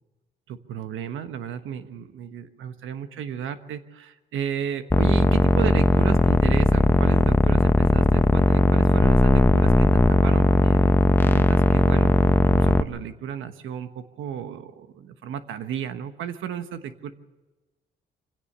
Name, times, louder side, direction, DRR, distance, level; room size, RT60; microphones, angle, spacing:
voice 1, 0.5-17.1, right 8 dB, 80° right, 9 dB, 1.3 m, -34 dB
sound 1, 4.9-12.8, left 2 dB, 10° left, 0.8 m, -18 dB
25.5 x 17.0 x 6.8 m, 1.1 s
cardioid pair, 90°, 20 cm